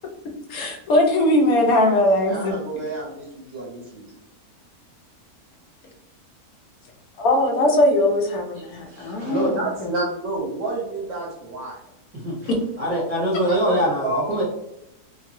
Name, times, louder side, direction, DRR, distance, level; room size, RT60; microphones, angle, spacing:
voice 1, 0.5-2.5 7.2-9.5, left 1 dB, 75° left, 1 dB, 1.1 m, -20 dB
voice 2, 2.2-4.2 8.5-11.8 12.4-12.5 13.5-14.2, right 2 dB, 55° right, -3 dB, 0.9 m, -29 dB
voice 3, 12.8-14.4, equal, 40° right, -6 dB, 0.5 m, -22 dB
3.0 x 2.5 x 2.5 m, 0.84 s
omnidirectional pair, 1.6 m